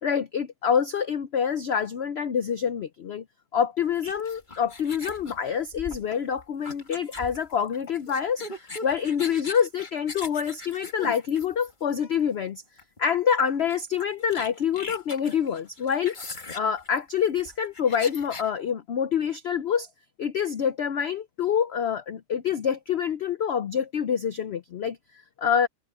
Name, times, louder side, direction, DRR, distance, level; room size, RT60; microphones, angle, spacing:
voice 1, 0.0-3.2 3.5-12.6 13.0-16.1 16.5-19.9 20.2-25.0 25.4-25.7, left 7 dB, 70° left, 0.6 m, -26 dB
sound 1, 4.0-12.0 12.8-13.0 13.3-13.4 13.7-18.5, left 3 dB, 30° left, 1.8 m, -40 dB
omnidirectional pair, 1.8 m